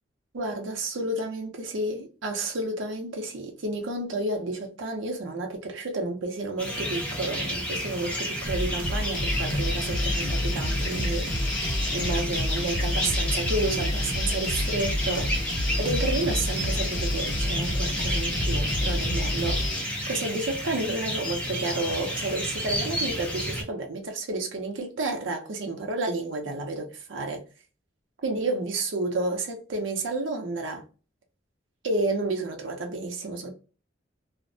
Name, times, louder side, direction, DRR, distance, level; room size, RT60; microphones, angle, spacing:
voice 1, 0.3-11.5 11.9-15.3 15.8-19.6 20.1-27.4 28.2-30.8 31.8-33.5, right 2 dB, 85° right, 0.6 m, -31 dB
sound 1, 6.6-23.6, equal, 5° left, 0.5 m, -31 dB
sound 2, 8.4-19.7, equal, 45° right, 0.7 m, -30 dB
sound 3, 9.1-19.8, left 2 dB, 65° left, 0.6 m, -35 dB
2.5 x 2.0 x 2.5 m
head